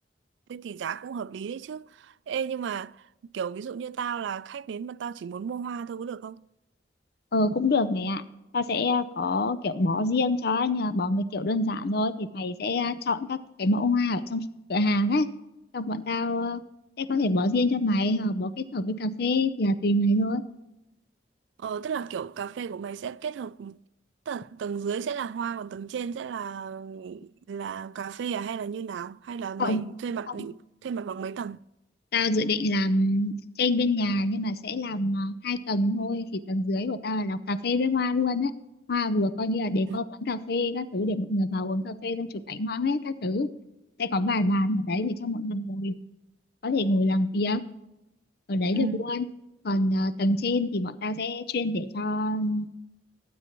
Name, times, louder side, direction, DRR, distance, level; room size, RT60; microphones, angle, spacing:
voice 1, 0.5-3.1 3.3-6.5 21.6-23.8 24.3-31.6 39.9-40.0 48.7-49.1, right 7 dB, 75° right, 0.3 m, -34 dB
voice 2, 7.3-8.2 8.5-15.3 15.7-16.6 17.0-20.4 29.6-29.8 32.1-38.5 38.9-43.5 44.0-46.0 46.6-47.6 48.5-49.2 49.6-52.7, left 2 dB, 55° left, 0.6 m, -26 dB
18.5 x 9.3 x 3.0 m
head